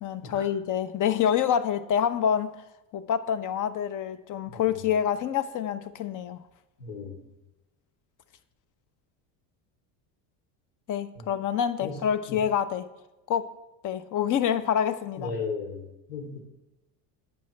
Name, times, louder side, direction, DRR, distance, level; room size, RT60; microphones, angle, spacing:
voice 1, 0.0-2.6 2.9-6.4 10.9-12.8 13.3-13.5 13.8-15.3, left 9 dB, 45° left, 12 dB, 0.8 m, -27 dB
voice 2, 6.8-7.3 11.1-11.3 11.8-12.0 12.3-12.4 15.2-16.4, left 4 dB, 80° left, 1 dB, 3.0 m, -36 dB
11.0 x 8.9 x 3.3 m, 0.97 s
supercardioid pair, 110°, 44 cm